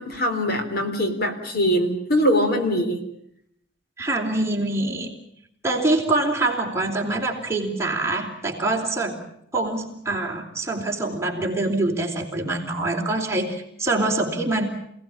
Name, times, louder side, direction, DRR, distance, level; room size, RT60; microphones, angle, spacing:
voice 1, 0.0-3.0, equal, 50° left, 6 dB, 3.8 m, -22 dB
voice 2, 4.0-5.1 5.6-9.2 9.5-14.7, right 2 dB, 15° right, 0 dB, 3.9 m, -25 dB
28.0 x 18.5 x 8.8 m, 0.74 s
head